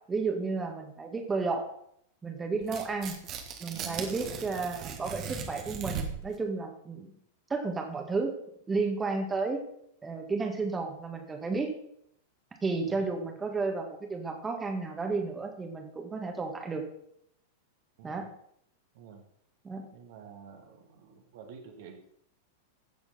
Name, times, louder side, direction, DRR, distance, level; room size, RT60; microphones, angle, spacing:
voice 1, 0.1-1.7 2.2-3.1 3.6-7.1 7.5-8.3 8.7-9.7 10.0-11.7 12.6-16.9 18.0-18.3 19.6-19.8, right 4 dB, 15° right, 3 dB, 1.8 m, -32 dB
Tearing, 2.6-6.3, right 6 dB, 35° right, 1.7 m, -38 dB
voice 2, 3.7-4.1 12.8-13.0 18.0-18.2 18.9-19.2 19.9-22.1, right 7 dB, 55° right, 3 dB, 1.8 m, -49 dB
15.0 x 7.0 x 4.3 m, 0.70 s
figure-of-eight pair, 95°, 0 cm